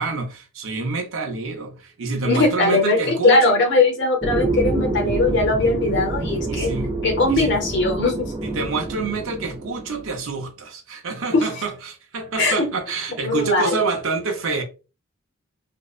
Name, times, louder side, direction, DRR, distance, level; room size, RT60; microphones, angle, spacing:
voice 1, 0.0-3.6 6.5-6.9 7.3-7.6 8.4-14.6, right 4 dB, 75° right, 0.6 m, -27 dB
voice 2, 2.2-6.7 7.0-8.3 11.3-11.5 12.4-12.6 13.2-13.7, left 2 dB, 55° left, 0.7 m, -19 dB
sound 1, 4.2-10.2, right 2 dB, 20° right, 0.3 m, -27 dB
2.6 x 2.0 x 2.3 m
head